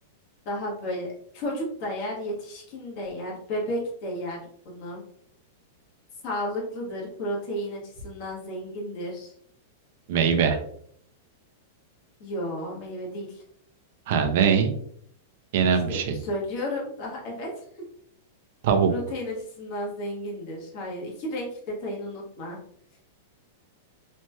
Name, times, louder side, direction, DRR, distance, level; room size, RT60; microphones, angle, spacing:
voice 1, 0.4-1.1 1.3-4.4 4.6-5.0 6.2-9.3 12.2-13.4 15.9-17.5 18.9-22.6, equal, 40° left, -3 dB, 1.2 m, -33 dB
voice 2, 10.1-10.6 14.1-14.7 15.5-16.1 18.6-18.9, right 7 dB, 55° right, 5 dB, 0.5 m, -21 dB
3.1 x 2.9 x 2.2 m, 0.64 s
supercardioid pair, 160°, 0 cm